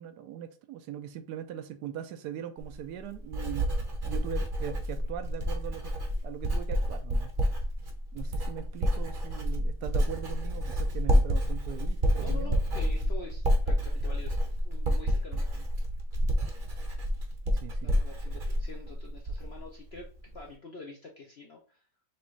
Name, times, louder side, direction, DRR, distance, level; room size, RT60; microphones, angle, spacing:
voice 1, 0.0-3.7 4.1-6.0 6.2-7.3 8.1-12.5 17.5-17.9, right 10 dB, 75° right, 1.1 m, -40 dB
Writing, 2.6-19.6 19.9-20.4, equal, 40° right, 0.8 m, -29 dB
voice 2, 12.2-15.7 17.8-21.8, left 3 dB, 60° left, 0.7 m, -46 dB
6.1 x 2.5 x 3.1 m
omnidirectional pair, 1.8 m